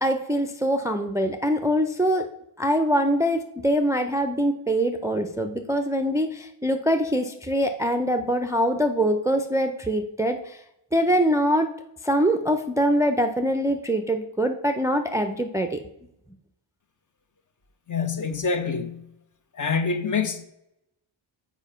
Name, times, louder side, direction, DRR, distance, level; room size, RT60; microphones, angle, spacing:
voice 1, 0.0-2.3 2.6-10.6 10.9-11.7 12.0-15.8, equal, 5° right, 0.5 m, -23 dB
voice 2, 17.9-19.1 19.5-20.4, left 5 dB, 40° left, 0.9 m, -26 dB
7.1 x 5.0 x 5.6 m
wide cardioid pair, 100°, 48 cm